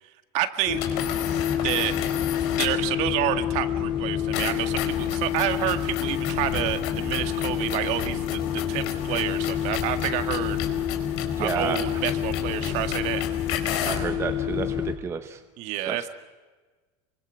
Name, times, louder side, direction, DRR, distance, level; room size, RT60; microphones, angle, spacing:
voice 1, 0.3-0.8 1.6-2.0 2.6-10.6 11.4-13.2 15.6-16.0, right 13 dB, 55° right, 8 dB, 2.0 m, -29 dB
sound 1, 0.7-2.9 4.3-14.1, left 9 dB, 75° left, 4.3 m, -34 dB
sound 2, 0.7-14.9, left 9 dB, 35° left, 3.3 m, -28 dB
voice 2, 11.4-11.8 13.8-15.4 15.9-16.0, right 6 dB, 20° right, 7 dB, 0.9 m, -30 dB
28.5 x 24.0 x 6.4 m, 1.3 s
cardioid pair, 165°, 14 cm